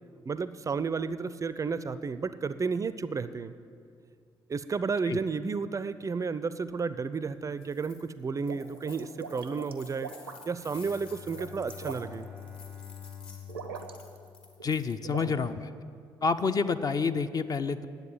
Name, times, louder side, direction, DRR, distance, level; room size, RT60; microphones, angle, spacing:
voice 1, 0.3-3.5 4.5-10.1 10.5-12.3 15.3-15.4, right 5 dB, 30° right, 14 dB, 0.4 m, -32 dB
sound 1, 7.5-8.0 8.4-15.1, left 4 dB, 55° left, 1.8 m, -52 dB
sound 2, 8.2-10.6 11.2-12.3 13.5-14.3 14.5-15.3, right 6 dB, 85° right, 0.6 m, -42 dB
Bowed string instrument, 10.6-14.9, left 8 dB, 90° left, 2.0 m, -47 dB
voice 2, 14.6-15.7 16.2-17.9, left 5 dB, 35° left, 10 dB, 0.5 m, -28 dB
10.5 x 7.9 x 7.3 m, 2.3 s
figure-of-eight pair, 40°, 12 cm